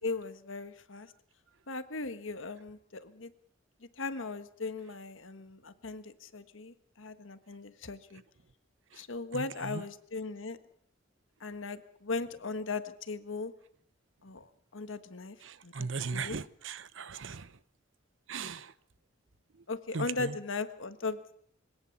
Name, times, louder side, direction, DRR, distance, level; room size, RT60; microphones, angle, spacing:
voice 1, 0.0-1.1 1.7-3.3 3.8-8.2 8.9-10.6 11.4-13.5 14.2-15.4 15.6-16.4 19.7-21.3, left 3 dB, 75° left, 1.5 m, -38 dB
voice 2, 9.3-9.8 15.4-17.6 18.3-18.7 19.5-19.6 19.9-20.4, right 4 dB, 70° right, 0.9 m, -38 dB
23.5 x 17.5 x 7.2 m
head